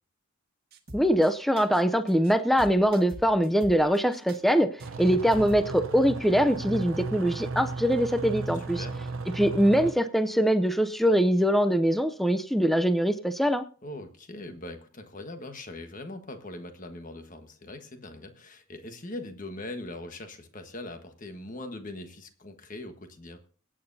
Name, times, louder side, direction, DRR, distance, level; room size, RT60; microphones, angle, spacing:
sound 1, 0.7-1.3 1.6-1.8 2.1-2.3 2.6-4.4 4.8-4.9 5.3-5.7, equal, 50° right, 1.5 m, -44 dB
voice 1, 0.9-4.7 5.0-8.8 9.4-13.6, equal, ahead, 10 dB, 0.5 m, -23 dB
sound 2, 4.8-9.9, right 3 dB, 65° right, 0.8 m, -35 dB
voice 2, 8.5-9.1 13.8-23.4, left 1 dB, 40° left, 6 dB, 1.4 m, -41 dB
24.0 x 8.8 x 2.7 m, 0.41 s
head